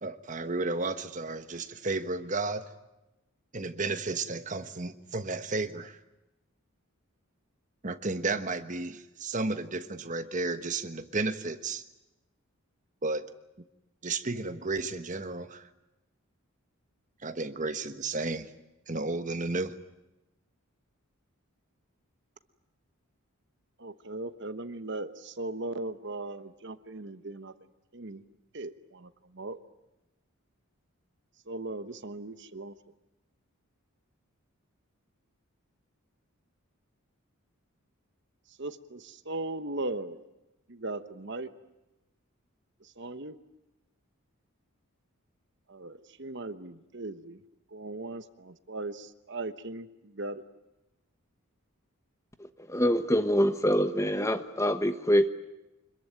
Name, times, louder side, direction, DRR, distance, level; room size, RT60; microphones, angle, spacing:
voice 1, 0.0-2.7 3.5-6.0 7.8-11.8 13.0-13.3 14.0-15.7 17.2-18.5 18.9-19.7, right 3 dB, 35° right, 10 dB, 1.3 m, -33 dB
voice 2, 23.8-27.5 27.9-28.2 28.5-29.6 31.5-32.7 38.6-40.3 40.7-41.5 42.8-43.4 45.7-47.4 47.7-50.4, right 2 dB, 55° right, 11 dB, 1.2 m, -38 dB
voice 3, 52.7-55.3, equal, 15° left, 10 dB, 1.1 m, -25 dB
26.0 x 21.5 x 9.1 m, 0.97 s
head